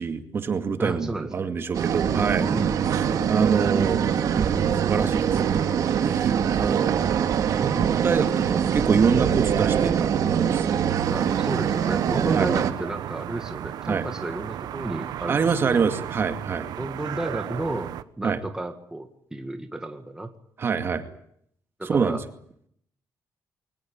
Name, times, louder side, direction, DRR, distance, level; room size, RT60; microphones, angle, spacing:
voice 1, 0.0-2.5 3.3-4.1 4.4-5.7 6.0-7.0 7.6-10.7 12.3-12.5 13.9-14.1 15.3-16.7 18.2-18.4 20.6-21.1 21.8-22.2, right 5 dB, 35° right, 8 dB, 2.2 m, -25 dB
voice 2, 0.8-1.5 2.5-3.0 11.1-15.9 16.8-17.9 18.2-20.3 21.8-22.2, right 2 dB, 10° right, 6 dB, 1.9 m, -32 dB
sound 1, 1.7-12.7, right 8 dB, 60° right, 2.1 m, -23 dB
sound 2, 11.0-18.0, right 11 dB, 80° right, 1.2 m, -35 dB
23.0 x 19.5 x 8.9 m, 0.68 s
cardioid pair, 165°, 7 cm